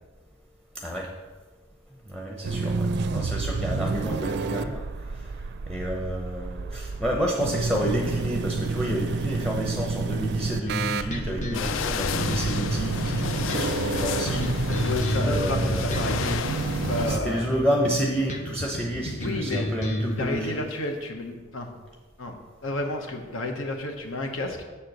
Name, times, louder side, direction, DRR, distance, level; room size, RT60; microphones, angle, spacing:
voice 1, 0.7-1.1 2.1-5.4 5.7-16.1 17.1-20.6, equal, 5° left, 0 dB, 0.7 m, -30 dB
sound 1, 2.4-17.2, right 3 dB, 55° right, 0.4 m, -29 dB
sound 2, 10.7-20.3, left 1 dB, 40° left, 0.9 m, -32 dB
sound 3, 11.5-17.2, left 7 dB, 70° left, 0.4 m, -32 dB
voice 2, 14.7-16.4 16.9-17.5 19.2-19.7 20.0-21.7 22.2-22.4 22.6-24.6, left 2 dB, 85° left, 4 dB, 1.1 m, -31 dB
7.2 x 4.4 x 6.6 m, 1.3 s
head